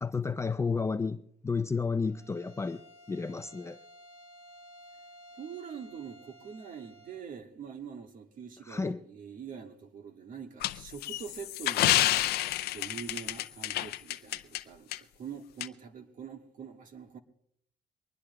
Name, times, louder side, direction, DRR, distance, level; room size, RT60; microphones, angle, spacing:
voice 1, 0.0-2.8 3.1-3.8 8.7-9.0, left 4 dB, 15° left, 0.4 m, -31 dB
Bowed string instrument, 2.1-7.3, equal, 15° right, 5.9 m, -54 dB
voice 2, 5.4-12.4 12.7-17.2, right 7 dB, 55° right, 1.5 m, -44 dB
sound 1, 10.6-14.6 14.9-15.0 15.6-15.7, left 15 dB, 70° left, 0.5 m, -29 dB
23.5 x 20.0 x 2.2 m
cardioid pair, 110°, 17 cm